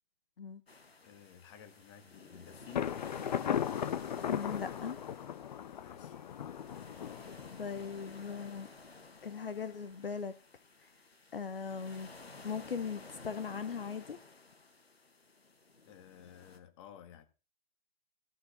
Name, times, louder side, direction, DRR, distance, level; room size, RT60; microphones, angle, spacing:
sound 1, 0.7-16.6, left 3 dB, 85° left, 2.1 m, -53 dB
voice 1, 1.0-2.9 5.6-6.3 6.9-7.1 15.8-17.2, left 9 dB, 30° left, 1.7 m, -54 dB
Thunder, 2.7-8.4, left 9 dB, 45° left, 0.6 m, -37 dB
voice 2, 4.3-5.0 7.6-8.7 9.2-10.3 11.3-12.1 12.4-14.2, left 6 dB, 65° left, 1.1 m, -39 dB
13.5 x 4.9 x 7.9 m
figure-of-eight pair, 135°, 30 cm